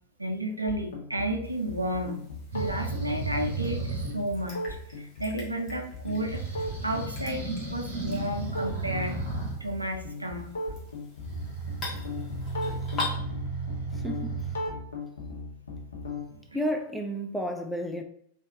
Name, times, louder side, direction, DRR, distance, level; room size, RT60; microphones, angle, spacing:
voice 1, 0.2-2.2 2.5-4.6 4.9-6.4 6.8-9.2 9.6-10.5 16.3-16.6, right 1 dB, 85° right, 0.4 m, -32 dB
sound 1, 0.6-16.3, left 2 dB, 70° left, 0.8 m, -38 dB
sound 2, 1.4-13.2, left 3 dB, 25° left, 1.2 m, -43 dB
sound 3, 2.5-4.2 6.1-9.6 11.3-14.6, right 3 dB, 65° right, 1.0 m, -34 dB
voice 2, 13.9-14.4 16.5-18.0, equal, ahead, 0.4 m, -31 dB
3.5 x 2.5 x 2.7 m
figure-of-eight pair, 90°, 0 cm